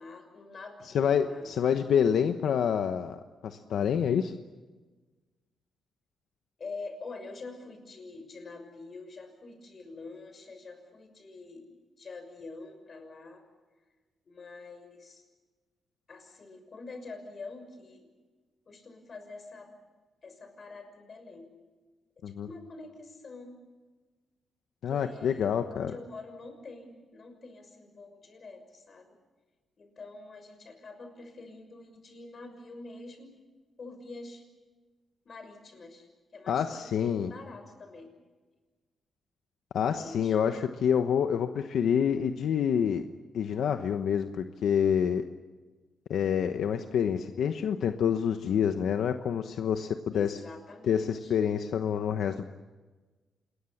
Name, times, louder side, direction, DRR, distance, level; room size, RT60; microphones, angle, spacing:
voice 1, 0.0-1.5 6.6-11.7 12.0-13.4 14.2-15.2 16.1-18.1 18.7-19.7 20.2-21.5 22.4-23.6 24.9-25.5 25.7-29.2 29.8-33.3 33.8-34.4 35.2-38.1 40.0-40.4 50.1-51.4, left 3 dB, 40° left, 6 dB, 6.3 m, -46 dB
voice 2, 0.9-4.3 22.2-22.5 24.8-25.9 36.5-37.3 39.7-43.0 43.3-45.2 46.1-50.4 50.9-52.4, left 8 dB, 80° left, 7 dB, 1.1 m, -27 dB
27.5 x 21.5 x 7.3 m, 1.3 s
cardioid pair, 115°, 0 cm